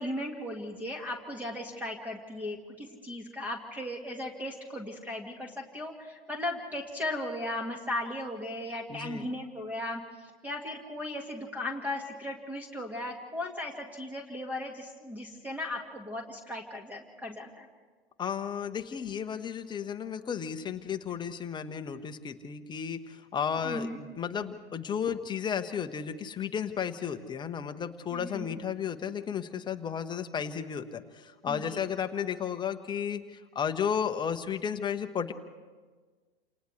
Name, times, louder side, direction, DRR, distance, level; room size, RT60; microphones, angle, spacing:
voice 1, 0.0-17.7 23.6-24.0 28.1-28.6 31.5-31.8, left 1 dB, 5° right, 2 dB, 1.7 m, -37 dB
voice 2, 8.9-9.3 18.2-35.3, left 7 dB, 15° left, 8 dB, 1.0 m, -33 dB
29.0 x 28.0 x 3.3 m, 1.4 s
figure-of-eight pair, 100°, 30 cm